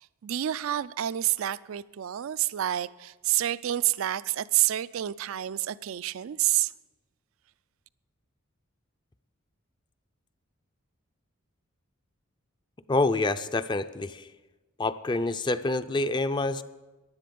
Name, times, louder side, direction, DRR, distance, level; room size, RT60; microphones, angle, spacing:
voice 1, 0.2-6.7, right 13 dB, 70° right, 0.4 m, -28 dB
voice 2, 12.9-14.3 14.8-16.6, left 2 dB, 20° left, 0.4 m, -27 dB
15.5 x 11.0 x 5.3 m
head